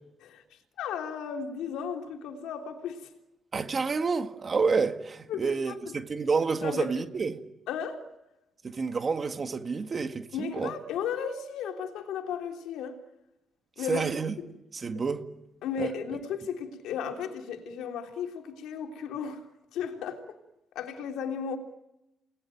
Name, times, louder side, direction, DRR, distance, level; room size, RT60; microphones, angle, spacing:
voice 1, 0.8-3.1 5.3-6.0 6.6-6.9 7.7-8.1 10.3-13.0 13.8-14.5 14.9-15.0 15.6-19.4 19.7-20.2 20.7-21.6, left 7 dB, 85° left, 3.4 m, -35 dB
voice 2, 3.5-7.4 8.6-10.7 13.9-14.3 14.7-15.2 15.8-15.9, right 4 dB, 40° right, 1.9 m, -29 dB
29.5 x 19.5 x 9.3 m
cardioid pair, 90°, 0 cm